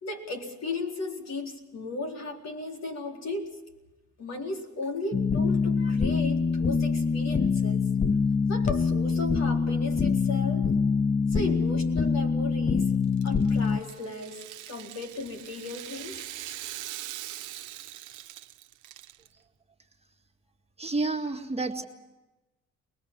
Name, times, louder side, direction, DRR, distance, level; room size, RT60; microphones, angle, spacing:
voice 1, 0.0-3.6 4.2-7.8 8.5-10.7 11.3-13.0 13.2-14.4 14.7-16.2, left 3 dB, 60° left, 1 dB, 4.3 m, -35 dB
sound 1, 5.1-13.8, left 5 dB, 25° left, 0.7 m, -25 dB
Rattle (instrument), 13.0-19.3, right 14 dB, 85° right, 0.9 m, -42 dB
voice 2, 20.8-21.8, right 3 dB, 20° right, 1 dB, 1.8 m, -29 dB
24.0 x 20.5 x 7.5 m, 1.1 s
cardioid pair, 90°, 30 cm